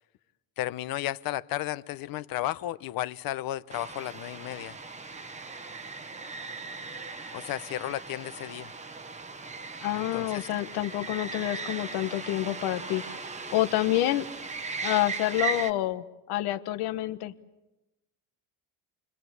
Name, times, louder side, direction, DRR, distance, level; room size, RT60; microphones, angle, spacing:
voice 1, 0.6-4.8 7.3-8.7 9.9-10.5, left 14 dB, 65° left, 16 dB, 0.9 m, -33 dB
sound 1, 3.7-15.7, right 4 dB, 20° right, 1.0 m, -38 dB
voice 2, 9.8-13.2 13.5-14.2 14.8-17.3, left 15 dB, 80° left, 11 dB, 1.4 m, -28 dB
29.0 x 22.0 x 8.1 m, 1.0 s
cardioid pair, 140°, 38 cm